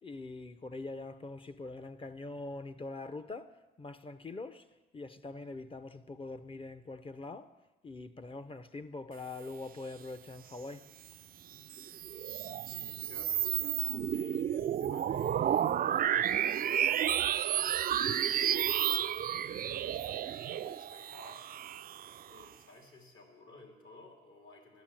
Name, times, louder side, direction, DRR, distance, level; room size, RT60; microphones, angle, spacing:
voice 1, 0.0-4.7 4.9-7.5 7.8-10.8, left 3 dB, 25° left, 0.6 m, -43 dB
sound 1, 11.5-22.4, right 10 dB, 50° right, 0.4 m, -32 dB
voice 2, 12.7-15.8 16.5-21.5 22.3-24.8, left 3 dB, 75° left, 2.9 m, -56 dB
11.5 x 6.9 x 8.9 m
cardioid pair, 90°, 20 cm